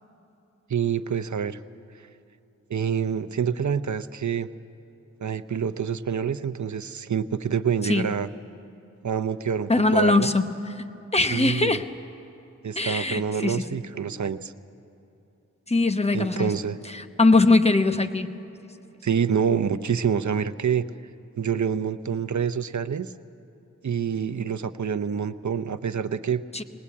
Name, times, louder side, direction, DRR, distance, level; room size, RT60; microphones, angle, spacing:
voice 1, 0.7-1.6 2.7-4.5 5.2-8.3 9.0-10.3 11.3-11.8 12.6-14.5 16.1-16.8 19.0-20.9 21.4-23.1 23.8-26.6, right 7 dB, 70° right, 11 dB, 0.7 m, -27 dB
voice 2, 9.7-10.5 10.8-10.9 11.1-11.8 12.8-13.8 15.7-16.5 16.9-18.3 26.5-26.6, left 2 dB, 20° left, 8 dB, 0.9 m, -21 dB
20.0 x 19.5 x 8.5 m, 2.9 s
wide cardioid pair, 60°, 30 cm